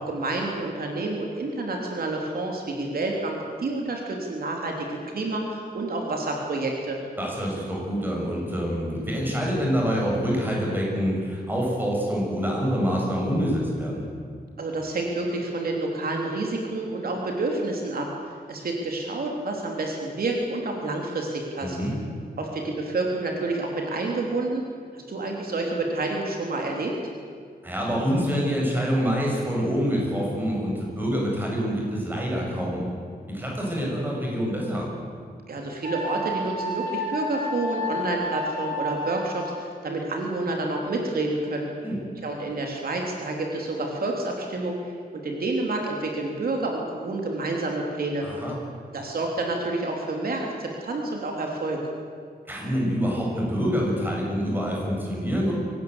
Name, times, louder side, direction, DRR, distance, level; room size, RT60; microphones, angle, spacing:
voice 1, 0.0-7.0 14.6-18.1 18.5-21.8 22.4-24.6 24.9-26.9 35.5-41.7 42.2-44.8 45.2-48.3 48.9-51.8, right 2 dB, 65° right, 1 dB, 3.3 m, -29 dB
voice 2, 7.2-14.0 21.6-22.0 27.6-32.8 33.3-34.9 41.8-42.0 48.2-48.6 52.5-55.5, equal, 10° right, -3 dB, 7.2 m, -26 dB
Wind instrument woodwind instrument, 35.8-39.6, left 1 dB, 45° right, 4.4 m, -31 dB
24.5 x 19.0 x 8.1 m, 2.2 s
wide cardioid pair, 180°, 17 cm